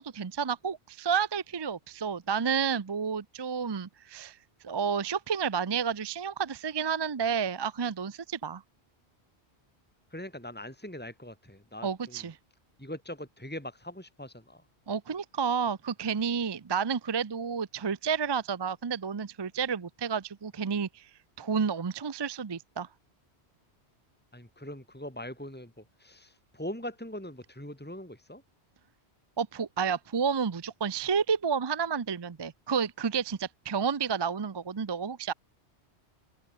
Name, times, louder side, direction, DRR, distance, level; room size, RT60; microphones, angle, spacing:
voice 1, 0.0-4.4 4.6-8.6 11.8-12.4 14.9-21.1 21.4-22.9 29.4-35.3, right 6 dB, 30° right, 0.5 m, -30 dB
voice 2, 10.1-12.3 12.8-14.6 24.3-28.4, left 1 dB, 10° left, 3.9 m, -41 dB
open air
omnidirectional pair, 1.1 m